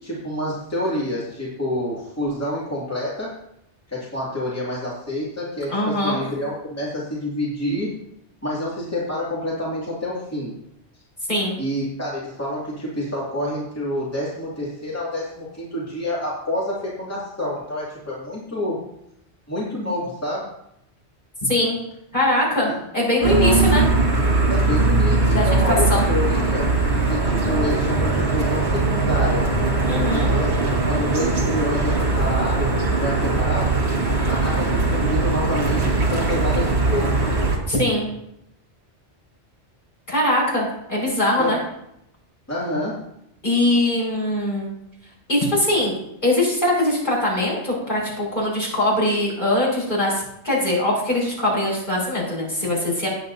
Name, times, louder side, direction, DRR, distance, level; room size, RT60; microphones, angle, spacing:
voice 1, 0.0-3.3 3.9-7.9 8.4-10.5 11.6-18.8 19.5-20.5 23.2-23.6 24.5-26.7 27.1-29.5 30.1-30.5 30.9-33.8 34.3-37.1 41.4-41.5 42.5-43.0, left 1 dB, 15° left, -7 dB, 2.5 m, -28 dB
voice 2, 5.7-6.2 11.3-11.6 21.4-21.8 22.1-23.8 25.3-26.0 29.8-30.3 37.7-38.1 40.1-41.6 43.4-44.7 45.3-46.0 46.2-53.1, left 1 dB, 45° left, -5 dB, 5.4 m, -22 dB
sound 1, 23.2-37.6, right 3 dB, 65° right, 2.1 m, -20 dB
18.0 x 8.5 x 2.7 m, 0.79 s
omnidirectional pair, 1.2 m